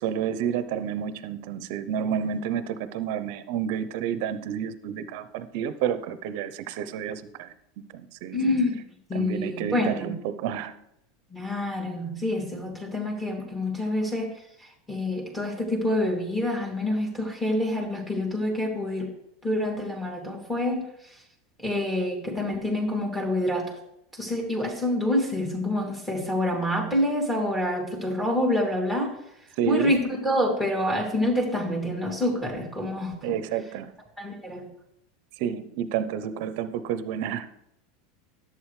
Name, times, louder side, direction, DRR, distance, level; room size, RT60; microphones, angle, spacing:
voice 1, 0.0-7.5 7.9-8.4 9.1-10.8 29.6-29.9 33.2-33.9 35.4-37.5, right 9 dB, 65° right, 12 dB, 0.7 m, -30 dB
voice 2, 8.3-8.8 9.1-10.1 11.3-14.3 14.9-19.1 19.4-20.9 21.6-23.7 24.2-29.1 29.6-33.4 34.2-34.7, left 1 dB, 10° left, -2 dB, 2.6 m, -27 dB
11.0 x 7.8 x 3.3 m, 0.80 s
hypercardioid pair, 95°, 0 cm